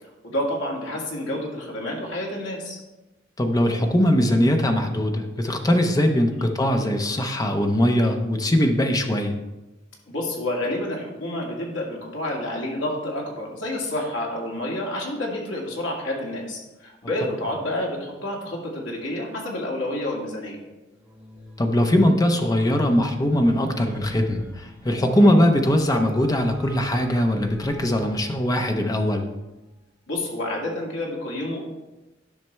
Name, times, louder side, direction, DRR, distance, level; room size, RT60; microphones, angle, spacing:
voice 1, 0.2-2.8 6.3-6.4 10.1-20.6 25.1-25.4 30.1-31.7, left 1 dB, 75° left, -2 dB, 2.1 m, -29 dB
voice 2, 3.4-9.4 21.6-29.3, left 1 dB, 20° left, 4 dB, 0.7 m, -21 dB
sound 1, 20.9-29.2, left 1 dB, 5° right, 1.4 m, -44 dB
10.5 x 5.8 x 3.3 m, 1.0 s
head